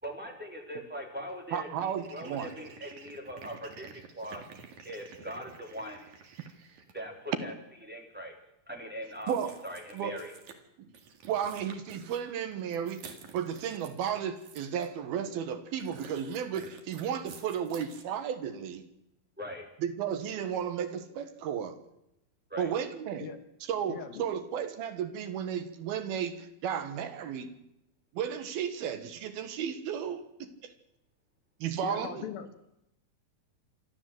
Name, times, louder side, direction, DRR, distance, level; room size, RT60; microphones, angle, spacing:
voice 1, 0.0-4.4 4.8-6.1 6.9-7.5 7.8-8.3 8.7-10.3 19.4-19.7 22.5-22.7, equal, 5° right, 3.6 m, -41 dB
sound 1, 1.3-1.4 1.8-7.0 9.1-10.6 10.9-14.9 15.8-18.0, right 6 dB, 55° right, 3.0 m, -51 dB
voice 2, 1.5-2.5 9.3-9.5 9.9-10.1 10.8-10.9 11.3-18.8 19.8-21.8 22.6-23.3 23.7-27.5 28.1-30.7 31.6-32.2, right 8 dB, 75° right, 3.2 m, -34 dB
voice 3, 23.9-24.2 31.8-32.5, left 8 dB, 70° left, 3.3 m, -39 dB
27.0 x 12.5 x 7.8 m
omnidirectional pair, 4.5 m